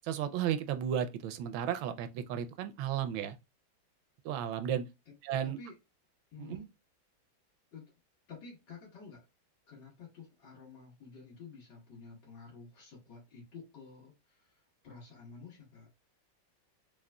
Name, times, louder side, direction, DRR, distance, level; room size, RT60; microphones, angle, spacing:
voice 1, 0.0-3.4 4.2-4.8 5.2-5.6 6.4-6.7, right 9 dB, 80° right, 1.3 m, -34 dB
voice 2, 5.4-5.8 6.3-6.6 7.7-7.9 8.3-9.2 9.7-15.9, left 5 dB, 65° left, 2.1 m, -51 dB
4.7 x 2.3 x 2.2 m
omnidirectional pair, 2.2 m